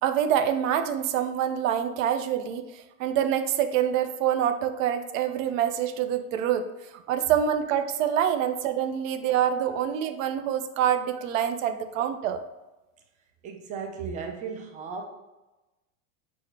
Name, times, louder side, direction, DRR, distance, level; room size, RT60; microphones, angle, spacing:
voice 1, 0.0-2.6 3.0-6.7 7.1-12.4, right 9 dB, 65° right, 8 dB, 0.6 m, -26 dB
voice 2, 13.4-15.1, right 5 dB, 20° right, 3 dB, 0.4 m, -35 dB
6.1 x 2.2 x 3.2 m, 1.1 s
supercardioid pair, 130°, 42 cm